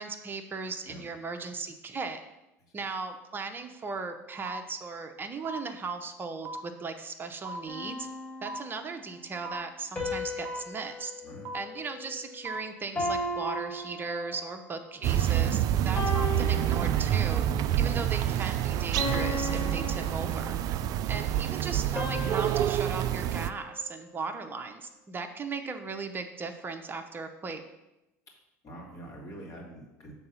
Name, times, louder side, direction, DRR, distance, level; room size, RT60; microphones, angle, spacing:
voice 1, 0.0-2.2 2.7-8.1 8.4-11.1 11.5-17.4 17.8-20.6 21.1-27.6, right 4 dB, 25° right, 6 dB, 0.7 m, -37 dB
sound 1, 4.5-4.6 5.5-5.6 6.5-6.6 7.5-7.6 8.5-8.6 9.5-9.6 10.5-10.6 11.5-11.6 12.5-12.6 13.5-13.6, right 3 dB, 70° right, 0.7 m, -38 dB
sound 2, 7.7-9.0 10.0-12.5 13.0-14.7 15.2-15.5 16.0-17.5 18.0-18.3 19.0-20.9 22.0-24.3, left 1 dB, 20° left, 2.4 m, -37 dB
voice 2, 11.2-11.5 17.5-17.7 28.6-30.1, right 1 dB, 40° left, -2 dB, 2.4 m, -45 dB
sound 3, 15.0-23.5, right 11 dB, 50° right, 0.3 m, -27 dB
6.8 x 3.8 x 5.6 m, 0.94 s
hypercardioid pair, 70°, 8 cm